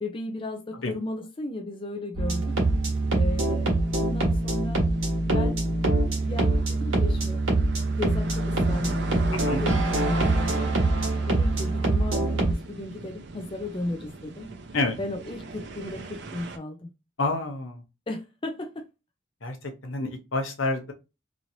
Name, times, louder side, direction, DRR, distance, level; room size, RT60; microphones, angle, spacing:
voice 1, 0.0-2.5 3.1-4.9 5.3-5.7 6.2-7.4 8.0-10.7 11.3-14.5 15.0-16.9 18.1-18.9, left 2 dB, 25° left, 0.4 m, -35 dB
sound 1, 2.2-12.5, right 2 dB, 85° right, 1.3 m, -24 dB
sound 2, 2.5-16.6, right 3 dB, 60° right, 0.6 m, -40 dB
voice 2, 17.2-17.8 19.4-20.9, left 2 dB, 75° left, 0.9 m, -28 dB
2.9 x 2.9 x 2.6 m
head